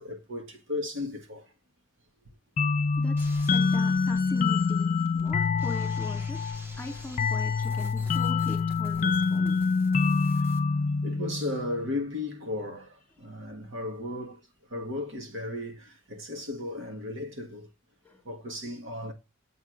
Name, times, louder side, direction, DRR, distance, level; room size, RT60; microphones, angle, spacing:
voice 1, 0.0-1.5 10.3-10.6 11.0-17.7 18.2-19.1, left 2 dB, 65° right, 1.7 m, -35 dB
sound 1, 2.6-11.9, left 4 dB, 40° left, 0.3 m, -26 dB
voice 2, 3.0-6.4 6.8-9.8 18.0-18.2, left 2 dB, 10° left, 2.1 m, -40 dB
sound 2, 3.2-10.6, equal, 10° right, 1.3 m, -49 dB
7.9 x 3.7 x 6.3 m
head